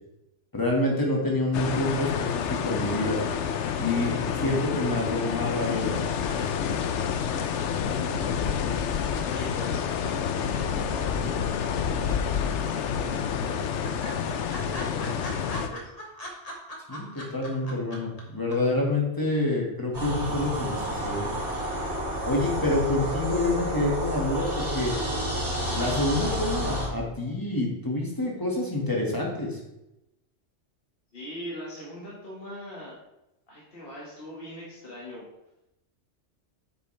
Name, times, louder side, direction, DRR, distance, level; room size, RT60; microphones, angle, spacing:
voice 1, 0.5-3.2 3.8-5.9 16.9-21.3 22.3-24.9 25.7-29.6, left 2 dB, 20° left, -2 dB, 2.0 m, -27 dB
sound 1, 1.5-15.7, left 7 dB, 85° left, 1.0 m, -28 dB
voice 2, 7.7-8.7 9.2-13.7 14.5-15.9 31.1-33.0 33.5-35.3, left 1 dB, 55° left, -6 dB, 2.0 m, -42 dB
sound 2, 12.1-12.8 13.1-13.2 13.4-13.5 13.8-18.2 18.5-18.6, equal, 35° left, 1.6 m, -39 dB
sound 3, 19.9-26.9, equal, 75° right, 3.1 m, -30 dB
8.8 x 6.9 x 3.4 m, 0.90 s
omnidirectional pair, 1.2 m